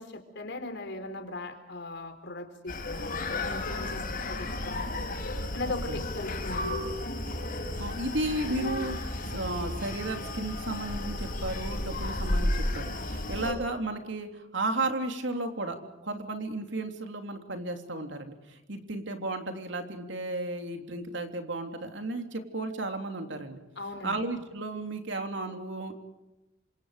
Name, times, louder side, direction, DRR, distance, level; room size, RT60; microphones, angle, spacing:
voice 1, 0.0-4.0 4.3-4.9 5.5-6.8 23.8-24.2, left 2 dB, 60° left, 7 dB, 4.0 m, -38 dB
Screaming, 2.7-13.5, left 1 dB, 45° left, 6.2 m, -33 dB
voice 2, 5.6-6.0 7.8-8.9 9.3-15.8 16.0-23.6 24.0-25.9, right 2 dB, 65° right, 5 dB, 3.4 m, -34 dB
28.5 x 26.5 x 5.1 m, 1.0 s
head